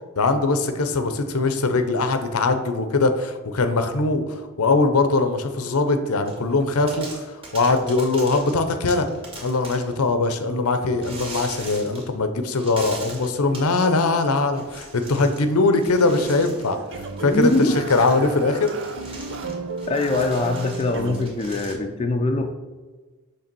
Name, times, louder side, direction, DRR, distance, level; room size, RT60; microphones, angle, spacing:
voice 1, 0.2-9.1 9.4-16.8 17.2-18.7, left 3 dB, 75° left, 8 dB, 0.7 m, -21 dB
sound 1, 6.3-6.5 6.9-10.0 11.0-12.2 12.5-13.8 14.5-15.5 15.8-21.7, right 2 dB, 25° right, 2.0 m, -40 dB
sound 2, 16.0-21.2, right 4 dB, 60° right, 0.6 m, -34 dB
voice 2, 17.2-17.8 19.9-22.5, left 2 dB, 25° left, 4 dB, 0.5 m, -23 dB
6.6 x 3.4 x 6.0 m, 1.3 s
head